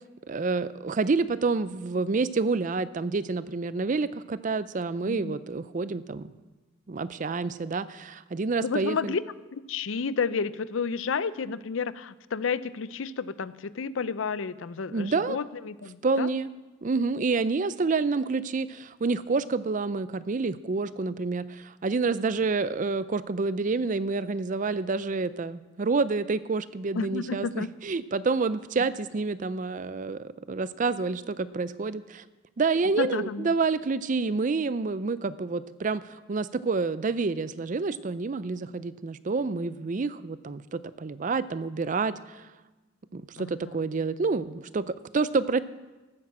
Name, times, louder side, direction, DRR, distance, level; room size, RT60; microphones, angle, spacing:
voice 1, 0.3-6.3 6.9-9.1 14.9-15.4 16.0-16.5 16.8-32.2 32.6-42.5 43.1-45.6, right 4 dB, 40° right, 15 dB, 0.5 m, -28 dB
voice 2, 5.0-5.4 8.6-9.2 9.5-16.3 26.9-27.7 33.0-33.5 43.4-43.8, left 5 dB, 80° left, 16 dB, 0.5 m, -31 dB
12.5 x 9.1 x 7.5 m, 1.2 s
head